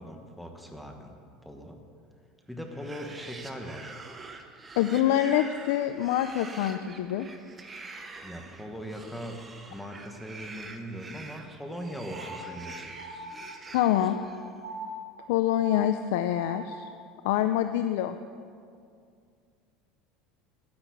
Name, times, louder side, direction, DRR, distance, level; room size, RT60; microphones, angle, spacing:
voice 1, 0.0-1.8 2.5-4.0 8.2-9.4 9.7-12.9, equal, ahead, 3 dB, 1.2 m, -40 dB
sound 1, 2.6-14.6, right 3 dB, 15° right, 0.9 m, -46 dB
voice 2, 4.8-7.3 13.7-14.2 15.3-16.9 17.2-18.2, left 12 dB, 75° left, 9 dB, 0.5 m, -25 dB
sound 2, 12.1-17.0, right 1 dB, 75° right, 1.4 m, -42 dB
10.5 x 9.9 x 8.2 m, 2.3 s
cardioid pair, 155°, 0 cm